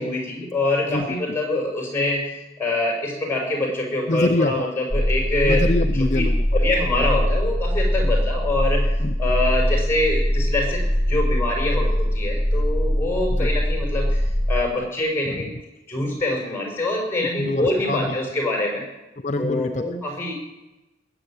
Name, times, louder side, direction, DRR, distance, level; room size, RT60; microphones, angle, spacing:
voice 1, 0.0-2.2 2.6-5.6 6.0-6.2 6.5-8.8 9.2-10.8 11.1-14.2 14.5-15.5 15.9-18.8 19.3-20.3, left 2 dB, 15° left, 0 dB, 5.9 m, -24 dB
voice 2, 4.1-4.7 5.4-6.5 8.0-8.2 9.0-9.1 13.3-13.5 15.3-15.6 17.4-18.2 19.2-19.8, left 2 dB, 40° left, 7 dB, 0.6 m, -25 dB
sound 1, 4.9-14.6, equal, 20° right, 2.2 m, -22 dB
20.0 x 8.0 x 8.9 m, 1.0 s
head